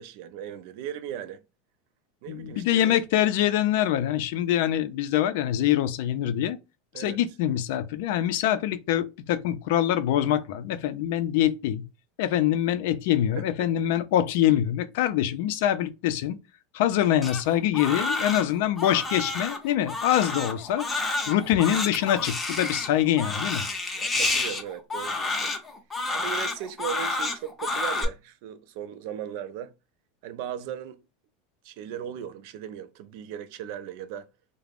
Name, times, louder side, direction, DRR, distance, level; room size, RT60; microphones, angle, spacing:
voice 1, 0.0-1.4 2.2-3.0 6.9-7.2 13.4-13.7 23.9-25.5 26.1-29.7 30.2-31.0 31.6-34.3, right 9 dB, 60° right, 0.3 m, -37 dB
voice 2, 2.3-6.6 7.0-11.9 12.2-16.4 16.7-20.8 21.3-23.6, left 11 dB, 70° left, 0.4 m, -24 dB
Crying sobbing, 17.2-28.0, left 3 dB, 10° left, 0.5 m, -30 dB
2.4 x 2.0 x 3.3 m
supercardioid pair, 145°, 0 cm